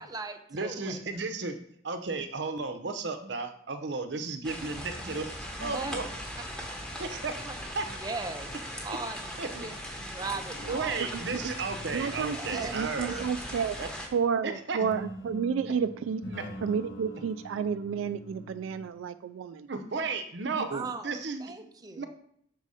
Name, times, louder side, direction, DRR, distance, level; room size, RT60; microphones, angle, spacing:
voice 1, 0.0-1.0 5.6-6.0 6.8-6.9 7.4-7.6 8.0-8.5 8.8-9.3 9.6-9.7 10.1-11.1 12.3-12.8 13.1-13.2 20.7-22.1, right 3 dB, 20° right, 6 dB, 0.5 m, -38 dB
voice 2, 0.5-1.6 1.8-6.0 7.0-7.4 7.7-7.9 8.9-9.0 9.4-9.7 10.6-13.3 13.8-13.9 14.4-14.8 15.6-15.7 16.2-16.4 19.7-21.5 21.9-22.1, right 4 dB, 60° right, 8 dB, 0.7 m, -34 dB
sound 1, 4.4-14.1, equal, 5° left, 1.0 m, -39 dB
sound 2, 10.5-13.6 14.8-18.9, equal, 70° left, 0.9 m, -44 dB
voice 3, 11.9-13.8 14.1-16.2 16.6-19.7 20.6-20.7, right 6 dB, 90° right, 13 dB, 0.3 m, -31 dB
6.2 x 4.1 x 4.9 m, 0.68 s
head